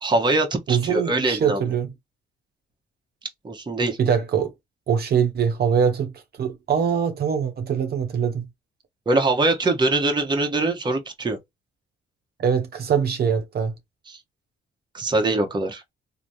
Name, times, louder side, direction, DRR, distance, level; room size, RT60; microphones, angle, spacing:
voice 1, 0.0-1.6 3.4-4.0 9.1-11.4 14.1-14.2 14.9-15.8, right 2 dB, 20° right, 0.8 m, -23 dB
voice 2, 0.7-1.9 4.0-4.5 4.9-8.5 12.4-13.7, right 7 dB, 55° right, 0.8 m, -23 dB
3.3 x 2.0 x 2.6 m
cardioid pair, 90°, 20 cm